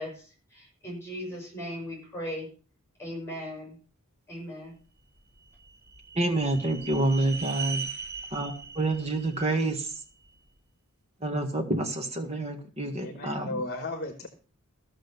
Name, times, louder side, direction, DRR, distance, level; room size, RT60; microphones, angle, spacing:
voice 1, 0.0-2.5 3.0-3.8 4.3-4.8 7.2-7.3, equal, 10° left, 0 dB, 6.7 m, -38 dB
sound 1, 5.2-10.4, right 5 dB, 45° right, 2.2 m, -40 dB
voice 2, 6.1-7.9 8.3-10.0 11.2-13.6, right 2 dB, 30° right, 5 dB, 1.7 m, -28 dB
voice 3, 13.0-14.3, left 2 dB, 45° left, 7 dB, 1.3 m, -35 dB
14.5 x 6.3 x 6.8 m, 0.39 s
head